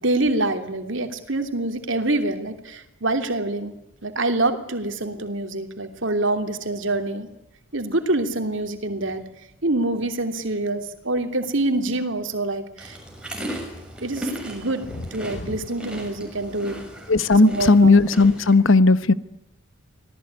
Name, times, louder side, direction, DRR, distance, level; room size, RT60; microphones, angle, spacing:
voice 1, 0.0-3.7 4.0-7.3 7.7-9.2 9.6-13.0 14.0-14.8 15.1-16.9 17.4-18.0, right 2 dB, 60° right, 2.9 m, -25 dB
sound 1, 12.8-18.6, equal, 5° right, 6.4 m, -36 dB
voice 2, 17.1-19.1, left 3 dB, 65° left, 1.1 m, -15 dB
26.0 x 18.0 x 9.6 m
head